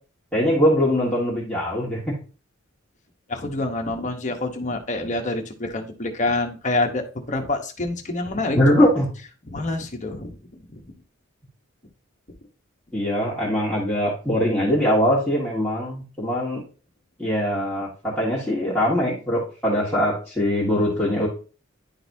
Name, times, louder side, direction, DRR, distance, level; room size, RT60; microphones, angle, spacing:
voice 1, 0.3-2.0 8.5-9.1 12.9-16.6 17.2-21.3, equal, 5° left, -8 dB, 1.5 m, -22 dB
voice 2, 3.3-8.9 9.5-10.4 10.7-10.8, left 2 dB, 35° left, 3 dB, 1.0 m, -27 dB
10.5 x 4.0 x 2.7 m, 0.36 s
head